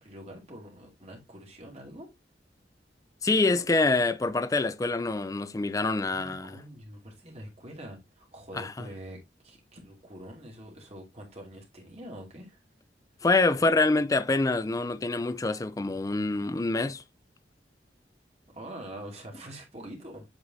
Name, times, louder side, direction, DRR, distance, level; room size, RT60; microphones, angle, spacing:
voice 1, 0.0-2.1 6.1-12.6 18.5-20.2, right 1 dB, 35° right, 2.4 m, -45 dB
voice 2, 3.2-6.6 8.5-8.9 13.2-17.0, left 3 dB, 20° left, 0.4 m, -26 dB
8.1 x 5.1 x 2.7 m
head